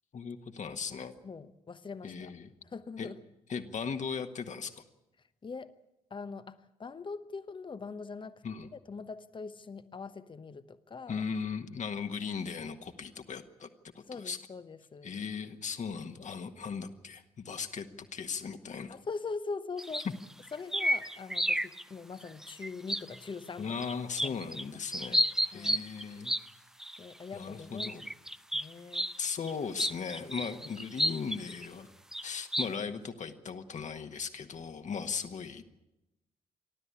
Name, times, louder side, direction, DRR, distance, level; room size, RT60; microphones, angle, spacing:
voice 1, 0.1-1.2 2.0-2.5 3.0-3.1 3.5-4.7 8.4-8.7 11.1-13.7 13.9-14.4 15.0-19.0 23.6-26.3 27.3-28.0 29.2-31.9 32.2-35.6, left 6 dB, 40° left, 7 dB, 1.6 m, -38 dB
voice 2, 1.2-2.3 2.6-3.2 5.2-5.7 6.1-11.3 14.1-15.2 18.9-20.1 20.5-23.8 24.2-24.4 25.5-25.8 27.0-28.1 28.5-29.1, left 4 dB, 25° left, 13 dB, 1.0 m, -42 dB
sound 1, 19.8-21.8 22.2-23.3 23.8-24.6 24.9-26.5 26.8-27.0 27.8-29.2 29.5-29.6 29.8-31.7 32.1-32.2 32.5-32.7, equal, 5° right, 0.7 m, -31 dB
29.0 x 12.5 x 8.5 m, 0.92 s
figure-of-eight pair, 40°, 18 cm